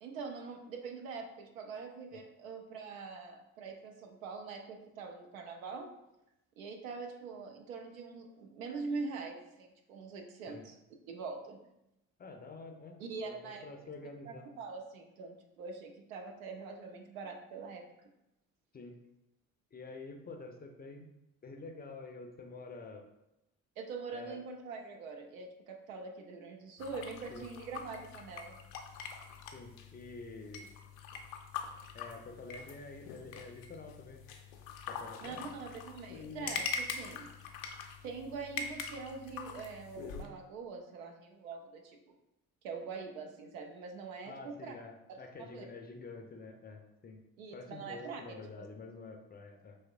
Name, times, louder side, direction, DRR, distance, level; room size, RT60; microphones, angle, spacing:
voice 1, 0.0-5.9 6.6-10.8 11.1-11.6 13.0-13.7 14.3-18.1 23.8-28.6 35.2-37.3 38.0-42.2 42.6-44.7 45.1-45.6 47.4-48.2 48.6-48.7, right 4 dB, 70° right, 3 dB, 0.6 m, -44 dB
voice 2, 12.2-14.5 18.7-19.0 19.7-21.1 21.4-23.1 24.1-24.4 27.3-27.5 29.5-30.7 31.9-34.2 34.9-35.5 44.2-47.2 47.5-49.8, left 3 dB, 25° left, 4 dB, 0.5 m, -48 dB
sound 1, 26.8-40.3, left 5 dB, 70° left, 0.5 m, -43 dB
4.8 x 3.1 x 2.3 m, 0.89 s
figure-of-eight pair, 45°, 42 cm